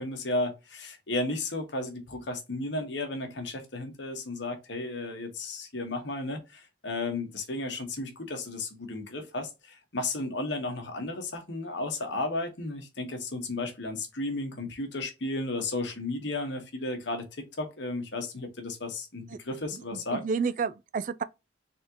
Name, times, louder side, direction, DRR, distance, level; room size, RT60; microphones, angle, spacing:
voice 1, 0.0-20.2, left 2 dB, 60° left, 1.3 m, -34 dB
voice 2, 19.7-21.2, right 5 dB, 40° right, 0.3 m, -31 dB
4.2 x 3.6 x 2.8 m
head